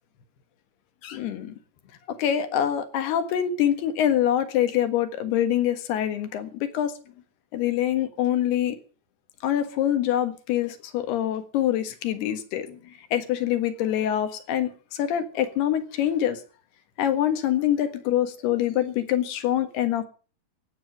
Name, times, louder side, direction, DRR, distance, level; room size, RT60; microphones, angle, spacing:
voice 1, 1.0-1.5 2.1-6.9 7.5-8.8 9.4-12.8 13.1-16.4 17.0-20.0, left 11 dB, 75° left, 3.6 m, -25 dB
17.0 x 7.1 x 9.2 m
omnidirectional pair, 4.7 m